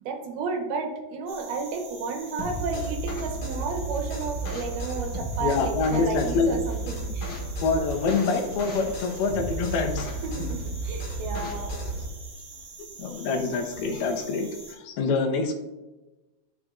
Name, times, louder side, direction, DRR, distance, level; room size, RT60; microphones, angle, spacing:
voice 1, 0.1-7.3 10.2-11.8, right 4 dB, 75° right, 2 dB, 2.8 m, -32 dB
sound 1, 1.3-14.7, right 3 dB, 50° right, 2.3 m, -46 dB
sound 2, 2.4-12.1, right 1 dB, 65° left, 2.8 m, -33 dB
voice 2, 5.4-6.5 7.6-10.2 11.4-11.5 13.0-15.5, left 4 dB, 80° left, 3 dB, 2.7 m, -26 dB
11.5 x 6.6 x 2.4 m, 1.1 s
omnidirectional pair, 4.6 m